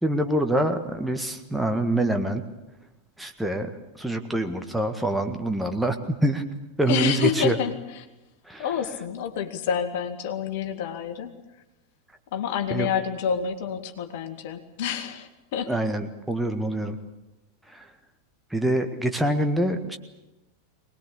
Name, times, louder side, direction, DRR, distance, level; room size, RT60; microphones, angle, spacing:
voice 1, 0.0-2.4 3.2-6.0 6.2-6.4 6.8-7.6 8.5-8.7 12.7-12.9 15.7-17.0 17.7-17.9 18.5-20.0, right 1 dB, 5° right, 5 dB, 1.6 m, -25 dB
voice 2, 6.9-7.7 8.6-11.3 12.3-15.7, left 7 dB, 50° left, 7 dB, 2.2 m, -28 dB
23.5 x 19.5 x 8.5 m, 0.99 s
figure-of-eight pair, 90°, 0 cm